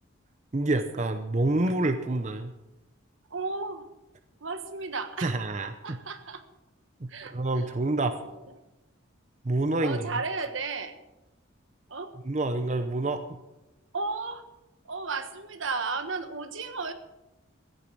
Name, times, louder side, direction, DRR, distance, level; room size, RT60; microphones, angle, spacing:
voice 1, 0.5-2.5 5.2-6.0 7.0-8.2 9.4-10.0 12.3-13.4, right 2 dB, 35° right, 8 dB, 0.7 m, -27 dB
voice 2, 3.3-3.9 4.4-5.4 5.8-6.4 7.1-7.6 7.9-8.5 9.8-11.0 11.9-12.1 13.9-14.4 14.8-16.9, right 4 dB, 70° right, 9 dB, 1.3 m, -34 dB
15.0 x 10.5 x 6.1 m, 0.99 s
head